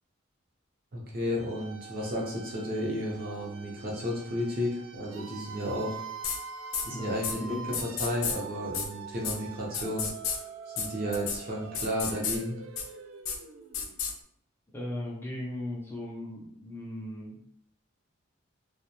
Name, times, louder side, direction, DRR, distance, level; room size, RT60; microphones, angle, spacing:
voice 1, 0.9-6.0 6.8-10.1 10.8-12.6, equal, 50° right, -3 dB, 0.7 m, -33 dB
sound 1, 1.3-14.1, right 5 dB, 80° right, 0.3 m, -44 dB
sound 2, 6.2-6.4 6.7-6.8 7.2-7.3 7.7-8.4 8.7-8.9 9.2-9.3 9.7-10.4 10.8-10.9 11.1-11.4 11.7-12.4 12.8-12.9 13.2-13.4 13.7-14.1, left 6 dB, 90° left, 0.4 m, -31 dB
voice 2, 6.8-7.8 14.7-17.4, left 1 dB, 10° left, -4 dB, 0.4 m, -38 dB
2.2 x 2.1 x 2.7 m, 0.69 s
head